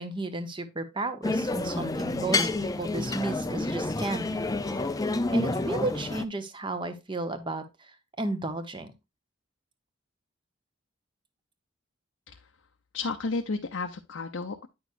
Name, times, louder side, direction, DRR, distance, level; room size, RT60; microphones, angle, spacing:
voice 1, 0.0-4.4 5.3-8.9, right 2 dB, 25° right, 9 dB, 1.0 m, -33 dB
sound 1, 1.2-6.2, left 2 dB, 20° left, 0.5 m, -29 dB
voice 2, 12.9-14.7, left 3 dB, 70° left, 5 dB, 0.7 m, -32 dB
9.4 x 6.1 x 2.5 m, 0.24 s
head